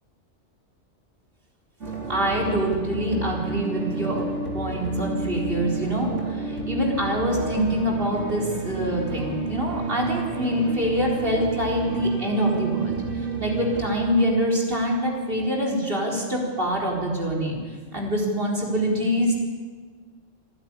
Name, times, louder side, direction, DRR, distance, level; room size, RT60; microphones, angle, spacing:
sound 1, 1.8-13.8, right 3 dB, 70° right, 3.7 m, -31 dB
voice 1, 2.1-4.3 4.5-17.6 17.9-19.3, equal, 45° right, 0 dB, 4.4 m, -25 dB
27.5 x 11.0 x 9.8 m, 1.5 s
omnidirectional pair, 1.3 m